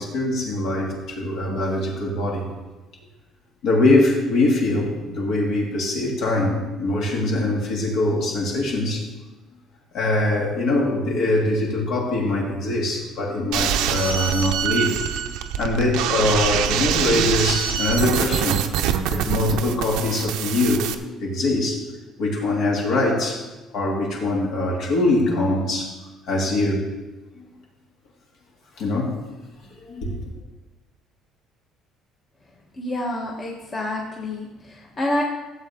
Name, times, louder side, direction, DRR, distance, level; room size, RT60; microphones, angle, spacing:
voice 1, 0.0-2.5 3.6-9.0 9.9-15.0 15.6-18.6 19.1-20.9 21.2-21.9 22.2-23.4 23.7-25.9 26.3-26.9 27.3-27.4 28.8-29.2 29.7-30.3, left 2 dB, 60° left, -2 dB, 3.2 m, -23 dB
sound 1, 13.5-20.9, right 9 dB, 90° right, 0.8 m, -24 dB
voice 2, 32.8-35.2, left 1 dB, 25° left, -2 dB, 1.4 m, -28 dB
16.5 x 8.0 x 3.8 m, 1.1 s
cardioid pair, 160°, 0 cm